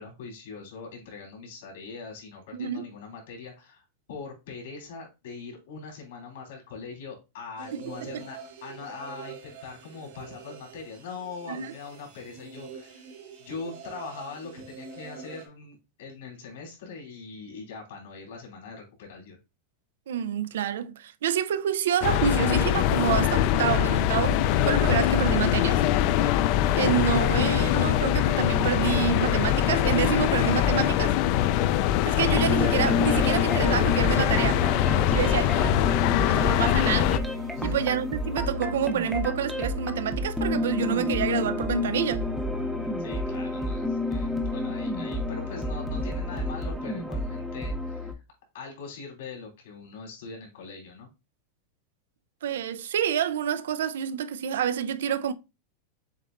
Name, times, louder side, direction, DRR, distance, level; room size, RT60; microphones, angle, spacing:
voice 1, 0.0-13.0 13.4-19.4 35.1-35.4 37.5-37.8 43.0-48.2 48.5-51.1, left 4 dB, 80° left, 3.0 m, -42 dB
voice 2, 2.5-2.9 7.7-8.2 11.5-11.7 20.1-25.8 26.8-31.2 32.1-34.6 35.1-35.7 36.3-37.1 37.6-42.3 52.4-55.3, right 9 dB, 90° right, 0.4 m, -28 dB
sound 1, 7.6-15.5, right 6 dB, 70° right, 1.5 m, -45 dB
sound 2, 22.0-37.2, left 12 dB, 45° left, 0.3 m, -23 dB
sound 3, 32.4-48.1, left 2 dB, ahead, 0.6 m, -30 dB
7.3 x 2.9 x 2.5 m
supercardioid pair, 150°, 0 cm